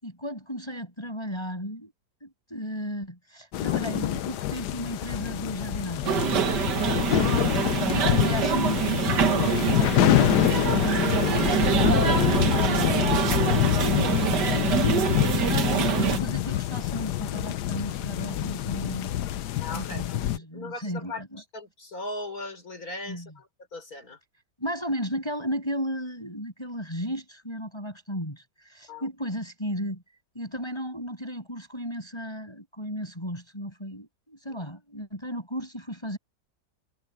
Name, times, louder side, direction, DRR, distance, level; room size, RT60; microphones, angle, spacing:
voice 1, 0.0-1.9 2.2-6.2 7.4-13.4 13.9-14.9 15.8-19.1 19.4-21.4 23.1-23.3 24.6-30.0 30.3-36.2, equal, 15° left, 7.3 m, -35 dB
sound 1, 3.5-20.4, left 13 dB, 75° left, 1.3 m, -26 dB
sound 2, 6.0-16.2, right 8 dB, 75° right, 1.9 m, -25 dB
voice 2, 7.0-7.5 15.5-15.9 19.6-21.2 21.5-24.2 28.9-29.1 34.5-34.6, left 2 dB, 55° left, 5.9 m, -39 dB
omnidirectional pair, 1.9 m